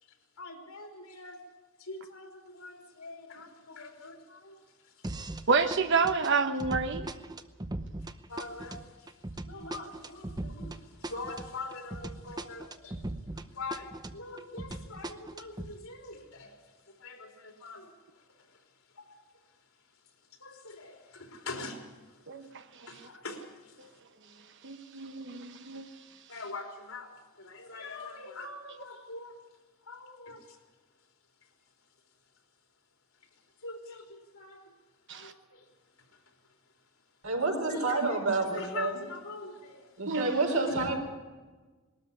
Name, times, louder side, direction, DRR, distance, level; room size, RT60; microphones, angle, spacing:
voice 1, 0.0-1.4 1.8-5.5 8.3-20.0 20.3-22.5 22.9-24.0 26.3-30.6 31.4-31.5 33.2-34.7 35.1-36.4 37.7-38.0 38.4-40.2 40.7-40.8, left 3 dB, 75° left, 2 dB, 3.7 m, -45 dB
sound 1, 5.0-5.5 5.7-13.5 13.7-15.7, right 2 dB, 20° right, 0.7 m, -39 dB
voice 2, 5.5-7.1 22.3-22.9 24.6-25.9 35.1-35.3 40.1-40.3, right 4 dB, 55° right, 8 dB, 1.0 m, -29 dB
voice 3, 37.2-38.9 40.0-41.0, right 3 dB, 75° right, 2 dB, 4.7 m, -28 dB
20.5 x 13.0 x 9.8 m, 1.3 s
head